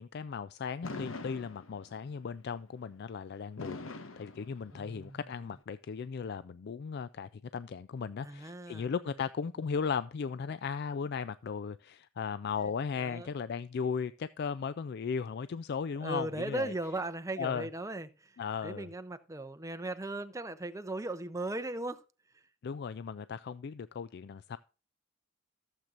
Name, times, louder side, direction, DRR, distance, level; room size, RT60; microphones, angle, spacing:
voice 1, 0.0-3.8 4.2-16.7 17.4-17.7 18.4-18.9 22.6-24.6, left 6 dB, 50° left, 0.3 m, -36 dB
Fireworks, 0.8-2.1 3.6-5.1, left 3 dB, 70° left, 1.0 m, -43 dB
voice 2, 4.7-5.2 8.2-8.9 13.0-13.3 16.0-18.4 18.6-22.0, right 2 dB, 15° right, 0.6 m, -37 dB
15.0 x 7.5 x 2.5 m
head